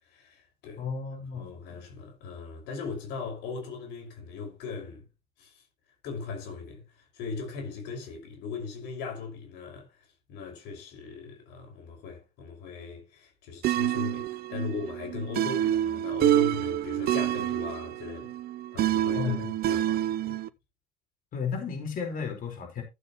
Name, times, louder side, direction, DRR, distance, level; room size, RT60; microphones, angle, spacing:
voice 1, 0.1-0.9 1.3-5.0 5.4-5.6 6.0-18.3 18.7-20.4, left 5 dB, 90° left, 5.7 m, -39 dB
voice 2, 0.8-1.8 19.1-19.5 21.3-22.8, left 6 dB, 55° left, 4.8 m, -33 dB
sound 1, 13.6-20.5, right 12 dB, 65° right, 0.7 m, -27 dB
14.5 x 7.8 x 3.1 m
cardioid pair, 110°, 17 cm